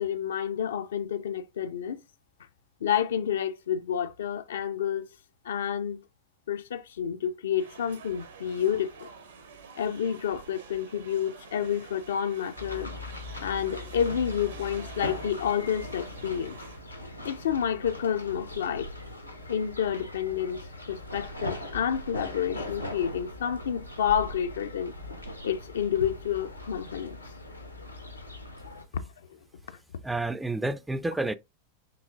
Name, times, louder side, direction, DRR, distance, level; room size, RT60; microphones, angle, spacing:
voice 1, 0.0-2.0 2.8-5.0 5.4-6.0 6.5-9.1 9.8-12.9 13.4-16.6 17.2-18.9 19.5-24.9 25.4-27.2 28.9-29.1, left 8 dB, 65° left, 0.4 m, -29 dB
sound 1, 7.6-16.8, right 5 dB, 70° right, 1.0 m, -48 dB
sound 2, 12.6-28.8, left 1 dB, 85° left, 0.9 m, -40 dB
voice 2, 30.0-31.4, right 2 dB, 5° right, 0.3 m, -29 dB
6.6 x 3.0 x 2.4 m
figure-of-eight pair, 90°, 0 cm